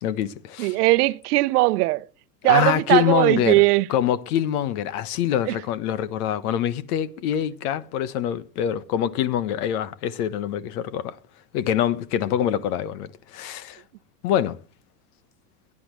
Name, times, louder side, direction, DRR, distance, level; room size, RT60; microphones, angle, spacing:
voice 1, 0.0-0.8 2.5-3.6 3.9-11.2 11.5-13.8 14.2-14.6, left 10 dB, 70° left, 1.3 m, -25 dB
voice 2, 0.6-2.0 2.4-3.9 5.5-5.6, right 20 dB, 70° right, 0.8 m, -19 dB
22.0 x 9.8 x 3.2 m
hypercardioid pair, 105°, 48 cm